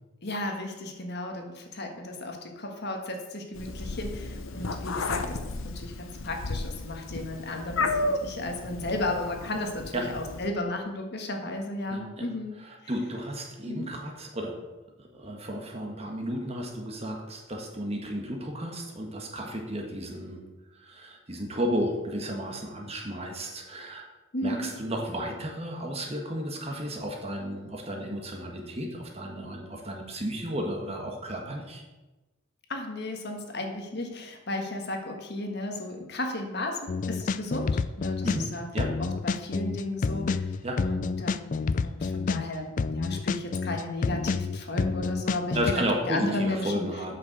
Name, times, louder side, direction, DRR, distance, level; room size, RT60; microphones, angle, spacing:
voice 1, 0.2-12.6 13.7-13.9 24.3-24.7 32.7-38.7 39.0-40.5 40.8-46.9, left 1 dB, 55° left, 3 dB, 1.5 m, -34 dB
Meow, 3.6-10.5, left 2 dB, 80° left, 0.8 m, -33 dB
voice 2, 11.9-12.3 12.6-14.6 15.0-20.4 20.7-24.1 24.4-31.8 38.2-38.9 40.6-40.8 45.5-47.2, equal, 30° right, 2 dB, 1.5 m, -33 dB
sound 1, 36.9-38.5 38.8-45.7, left 4 dB, 40° left, 0.3 m, -28 dB
8.4 x 6.6 x 6.6 m, 1.1 s
head